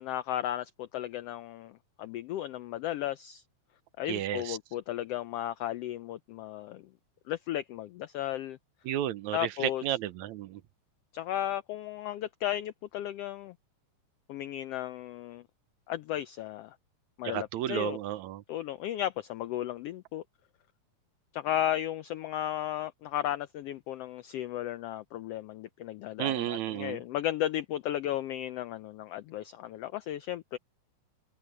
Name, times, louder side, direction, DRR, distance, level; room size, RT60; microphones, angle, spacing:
voice 1, 0.0-3.4 4.0-6.9 7.3-8.6 9.3-9.8 11.1-13.5 14.3-15.4 15.9-16.8 17.2-18.0 18.5-20.2 21.3-30.6, left 12 dB, 90° left, 1.3 m, -34 dB
voice 2, 4.1-4.6 8.9-10.6 17.2-18.4 26.2-27.0, right 12 dB, 75° right, 2.1 m, -32 dB
omnidirectional pair, 3.5 m